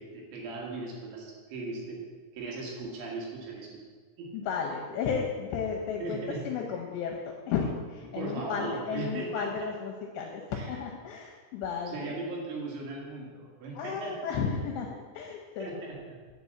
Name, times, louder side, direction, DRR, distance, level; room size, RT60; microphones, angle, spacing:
voice 1, 0.0-2.0 2.3-3.7 4.2-4.3 6.0-6.4 8.2-9.7 10.5-10.8 11.9-14.2 15.6-16.2, right 3 dB, 70° right, -2 dB, 3.9 m, -38 dB
voice 2, 4.3-7.2 7.5-12.2 13.8-15.7, left 6 dB, 75° left, 1 dB, 2.6 m, -33 dB
9.5 x 5.1 x 7.6 m, 1.5 s
omnidirectional pair, 5.8 m